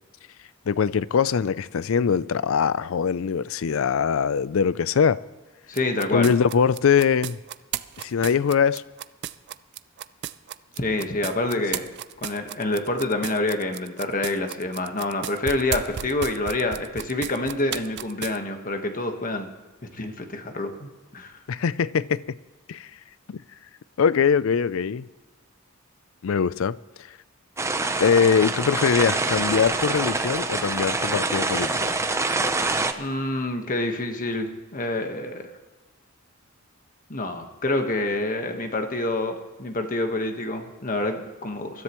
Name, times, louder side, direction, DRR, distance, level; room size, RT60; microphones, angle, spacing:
voice 1, 0.7-5.2 6.1-7.4 8.0-8.8 11.4-11.6 21.5-22.2 22.7-22.9 23.3-23.4 24.0-25.0 26.2-26.8 28.0-31.9, left 6 dB, 65° left, 0.4 m, -22 dB
voice 2, 5.7-6.3 10.8-11.9 12.2-19.5 20.0-21.3 33.0-35.4 37.1-41.8, left 2 dB, 40° left, 1.3 m, -27 dB
sound 1, 5.7-18.4, right 10 dB, 50° right, 0.4 m, -34 dB
sound 2, 27.6-32.9, right 3 dB, 15° right, 0.7 m, -25 dB
24.0 x 13.5 x 3.1 m
head